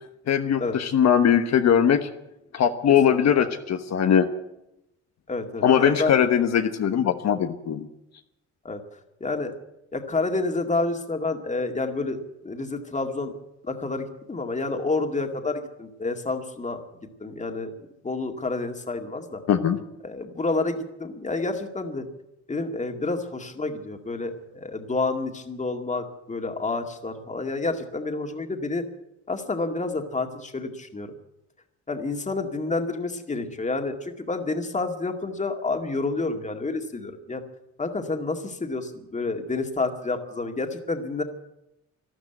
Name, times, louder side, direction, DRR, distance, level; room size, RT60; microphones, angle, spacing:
voice 1, 0.3-2.1 2.5-4.3 5.6-7.9 19.5-19.8, left 8 dB, 60° left, 7 dB, 1.1 m, -20 dB
voice 2, 5.3-6.2 8.6-8.8 9.2-9.5 9.9-12.2 12.4-13.3 13.6-16.8 17.2-17.7 18.0-19.4 20.0-22.1 22.5-28.8 29.3-31.1 31.9-37.4 37.8-41.2, left 3 dB, 25° left, 5 dB, 2.1 m, -29 dB
13.0 x 12.5 x 9.1 m, 0.87 s
cardioid pair, 90°, 30 cm